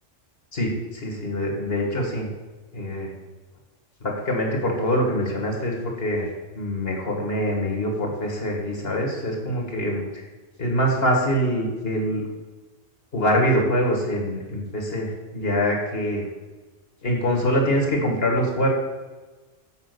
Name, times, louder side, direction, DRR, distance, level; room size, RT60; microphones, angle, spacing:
voice 1, 0.5-2.3 2.7-3.1 4.0-10.2 10.6-12.2 13.1-16.2 17.0-18.7, equal, 50° left, 0 dB, 1.9 m, -24 dB
7.6 x 5.1 x 6.7 m, 1.3 s
omnidirectional pair, 1.3 m